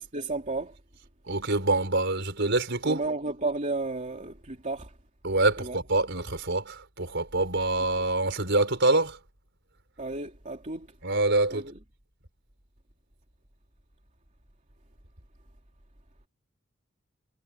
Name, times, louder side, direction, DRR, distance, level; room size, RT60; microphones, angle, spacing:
voice 1, 0.1-0.7 2.8-4.9 5.6-5.8 10.0-10.9 11.5-11.7, right 2 dB, 40° right, 3.0 m, -32 dB
voice 2, 1.3-3.0 5.2-9.2 11.0-11.7, right 2 dB, 60° right, 5.0 m, -25 dB
head